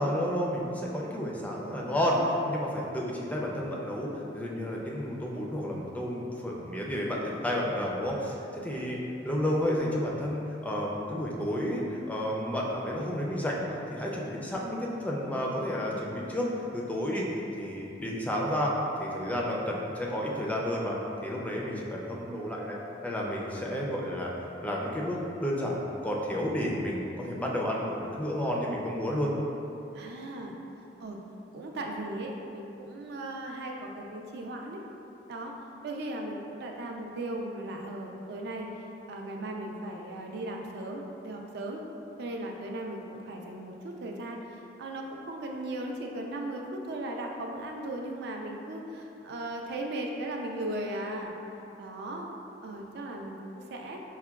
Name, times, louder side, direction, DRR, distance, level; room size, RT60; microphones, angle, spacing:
voice 1, 0.0-9.0 9.2-13.6 13.9-16.5 16.7-17.3 17.6-22.8 23.0-24.3 24.6-29.3, equal, 10° left, -3 dB, 0.3 m, -31 dB
voice 2, 29.9-30.5 31.0-31.2 31.5-34.8 35.3-35.5 35.8-41.8 42.2-51.3 51.8-52.3 52.6-54.0, right 1 dB, 60° right, 1 dB, 0.4 m, -37 dB
5.5 x 2.1 x 2.3 m, 2.9 s
head